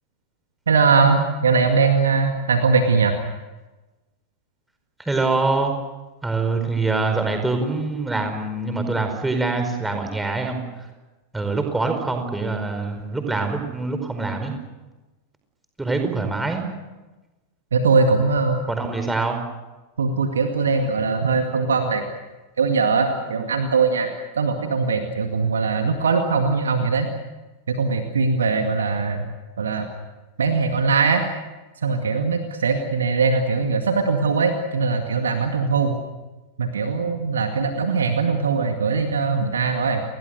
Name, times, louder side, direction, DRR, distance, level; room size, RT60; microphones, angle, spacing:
voice 1, 0.7-3.2 17.7-18.6 20.0-22.0 22.6-27.1 27.7-29.3 29.6-29.9 30.4-31.2 31.8-36.0 36.6-40.0, right 4 dB, 70° right, 5 dB, 2.1 m, -21 dB
voice 2, 5.0-5.7 6.2-10.6 11.3-14.5 15.8-16.6 18.7-19.4, right 3 dB, 5° right, 6 dB, 4.8 m, -24 dB
30.0 x 20.5 x 6.7 m, 1.1 s
figure-of-eight pair, 90°, 0 cm